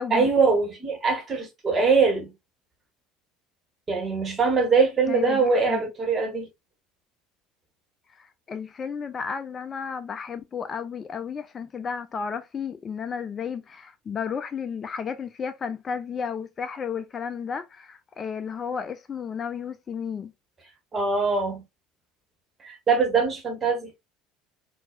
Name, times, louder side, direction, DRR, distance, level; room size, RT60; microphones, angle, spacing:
voice 1, 0.1-2.3 3.9-6.5 20.9-21.6 22.6-23.9, right 4 dB, 30° right, 1.7 m, -22 dB
voice 2, 5.1-5.8 8.2-20.3, left 6 dB, 30° left, 0.4 m, -33 dB
4.6 x 2.7 x 2.6 m
figure-of-eight pair, 65°, 0 cm